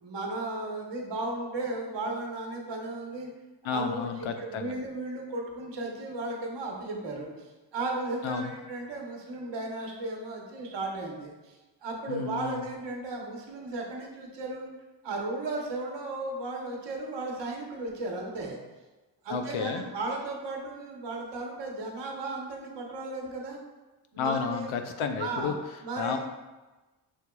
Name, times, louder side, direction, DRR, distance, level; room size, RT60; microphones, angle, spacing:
voice 1, 0.0-3.3 3.6-14.7 15.0-18.6 19.2-23.6 24.1-24.7 25.2-25.5 25.8-26.2, right 2 dB, 60° right, 0 dB, 1.0 m, -35 dB
voice 2, 3.6-4.7 8.2-8.5 12.1-12.6 19.3-19.8 24.2-25.5 26.0-26.2, left 6 dB, 80° left, 6 dB, 0.6 m, -31 dB
6.3 x 2.9 x 2.2 m, 1.2 s
cardioid pair, 70°, 48 cm